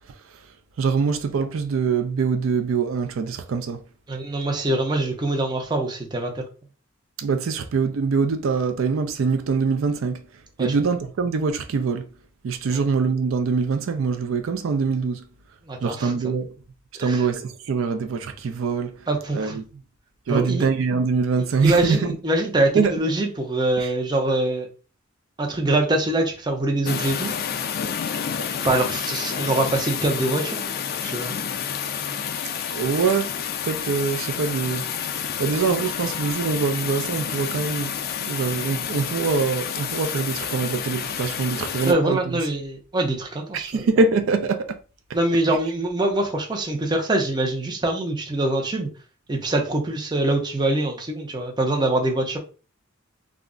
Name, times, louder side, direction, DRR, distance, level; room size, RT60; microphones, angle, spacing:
voice 1, 0.8-3.8 7.2-10.2 10.6-12.1 12.4-15.3 15.8-16.5 17.0-19.1 19.3-19.6 20.3-22.2 22.7-22.9 23.8-23.9 32.7-33.3 33.6-34.9 35.4-42.2 43.5-44.8, right 5 dB, 75° right, 0.4 m, -24 dB
voice 2, 4.1-6.4 10.6-10.7 12.7-12.8 15.6-16.1 17.0-17.2 19.1-19.6 20.3-20.7 21.6-24.7 25.4-27.3 28.6-31.3 41.8-43.9 45.1-48.9 49.3-52.4, right 2 dB, 20° right, 0.5 m, -24 dB
sound 1, 26.9-41.9, left 7 dB, 50° left, 0.3 m, -29 dB
2.4 x 2.0 x 3.6 m
head